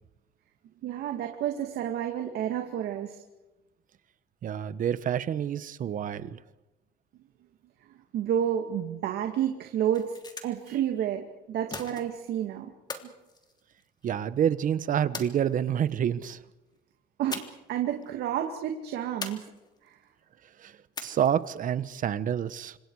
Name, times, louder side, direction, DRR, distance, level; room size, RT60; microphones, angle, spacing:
voice 1, 0.8-3.2 8.1-10.1 10.4-12.7 17.2-17.4 17.7-19.4 19.8-20.0, right 10 dB, 75° right, 2.4 m, -30 dB
voice 2, 4.4-6.4 14.0-16.4 20.6-20.7 21.0-22.8, right 9 dB, 50° right, 1.3 m, -28 dB
sound 1, 9.9-10.7 11.7-12.4 12.9-14.2 15.1-15.9 17.3-17.8 18.0-18.2 19.2-19.9 21.0-21.5, left 3 dB, 25° left, 3.3 m, -41 dB
29.5 x 26.5 x 4.9 m
cardioid pair, 110°, 17 cm